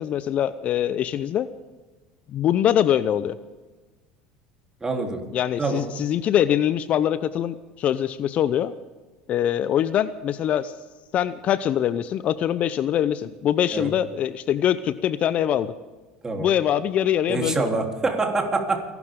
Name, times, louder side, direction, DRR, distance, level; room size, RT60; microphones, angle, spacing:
voice 1, 0.0-1.5 2.3-3.4 5.3-8.7 9.3-10.7 11.1-15.7 16.4-17.7, left 10 dB, 50° left, 15 dB, 0.7 m, -23 dB
voice 2, 4.8-5.2 5.6-5.9 13.7-13.9 16.2-16.5 17.3-18.8, right 3 dB, 20° right, 2 dB, 3.5 m, -25 dB
29.5 x 12.0 x 3.8 m, 1.3 s
supercardioid pair, 90°, 3 cm